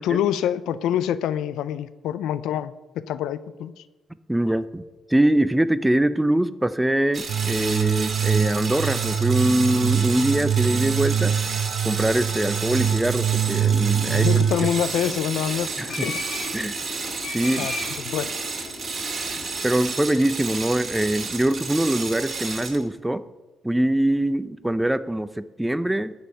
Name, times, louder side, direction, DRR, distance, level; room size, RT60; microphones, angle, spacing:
voice 1, 0.0-3.8 14.1-16.2 17.6-17.7 18.0-18.3, left 10 dB, 85° left, 15 dB, 0.4 m, -26 dB
voice 2, 4.3-4.8 5.1-11.3 11.8-14.3 15.8-16.1 16.5-16.8 17.3-17.7 19.6-23.2 23.6-26.1, right 1 dB, 10° right, 14 dB, 0.5 m, -23 dB
sound 1, 7.1-22.9, right 4 dB, 40° right, 2.2 m, -31 dB
sound 2, 7.3-14.7, right 8 dB, 70° right, 0.7 m, -24 dB
sound 3, 13.3-21.7, left 3 dB, 50° left, 2.1 m, -38 dB
13.5 x 5.5 x 8.9 m, 1.1 s
cardioid pair, 90°, 0 cm